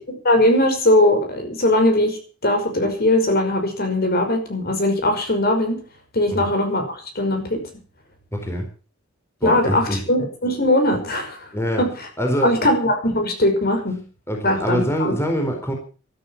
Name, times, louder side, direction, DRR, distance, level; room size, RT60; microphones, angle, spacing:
voice 1, 0.2-5.8 6.1-7.6 9.4-11.5 11.8-11.9 12.4-14.0 14.4-15.2, left 1 dB, 50° left, 5 dB, 5.7 m, -20 dB
voice 2, 8.3-8.7 9.4-10.0 11.5-11.8 12.2-12.7 14.3-15.7, equal, 15° left, 3 dB, 4.3 m, -24 dB
13.5 x 13.5 x 7.3 m, 0.38 s
head